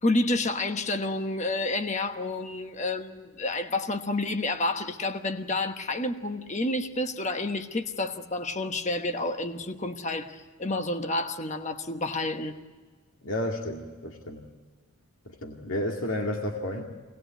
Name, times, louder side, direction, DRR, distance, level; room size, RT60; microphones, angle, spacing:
voice 1, 0.0-12.5, left 2 dB, 30° left, 1.2 m, -29 dB
voice 2, 13.2-14.4 15.4-16.8, left 1 dB, 65° left, 2.2 m, -31 dB
25.0 x 19.0 x 9.1 m
head